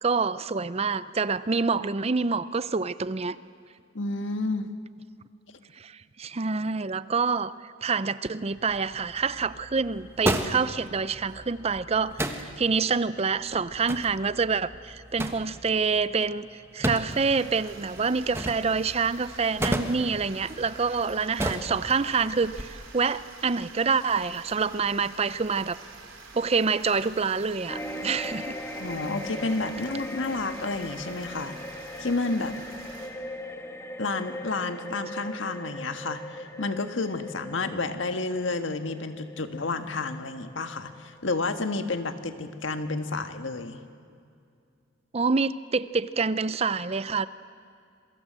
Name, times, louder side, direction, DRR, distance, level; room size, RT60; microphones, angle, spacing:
voice 1, 0.0-3.4 5.8-5.9 6.2-7.5 7.8-16.5 16.7-25.8 26.3-28.5 45.1-47.3, right 5 dB, 30° right, 15 dB, 0.5 m, -27 dB
voice 2, 3.9-4.7 28.8-31.5 32.0-32.6 34.0-43.8, left 3 dB, 70° left, 8 dB, 1.6 m, -30 dB
sound 1, 8.5-22.6, right 1 dB, 15° right, 1.4 m, -35 dB
sound 2, 17.1-33.1, right 4 dB, 90° right, 4.1 m, -47 dB
sound 3, 27.7-42.3 42.7-42.8, left 1 dB, 15° left, 1.3 m, -40 dB
27.5 x 23.5 x 7.5 m, 2.3 s
head